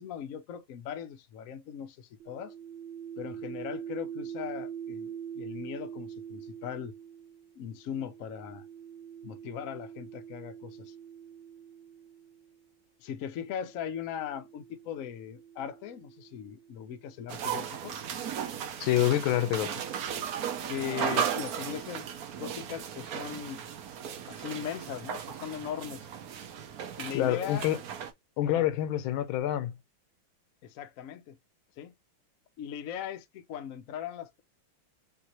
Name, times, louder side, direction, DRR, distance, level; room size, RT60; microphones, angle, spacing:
voice 1, 0.0-2.5 3.2-6.9 7.6-8.7 9.2-10.9 13.0-18.0 20.7-22.1 22.4-23.6 24.3-26.1 27.0-27.7 28.5-28.7 30.6-31.4 31.8-31.9 32.6-34.4, left 9 dB, 70° left, 0.8 m, -39 dB
sound 1, 2.2-12.6 13.5-17.2, right 8 dB, 90° right, 1.5 m, -44 dB
sound 2, 17.3-28.1, right 8 dB, 60° right, 1.0 m, -36 dB
voice 2, 18.8-19.8 27.1-27.8 28.4-29.8, left 12 dB, 85° left, 1.5 m, -27 dB
5.6 x 2.7 x 2.9 m
omnidirectional pair, 2.2 m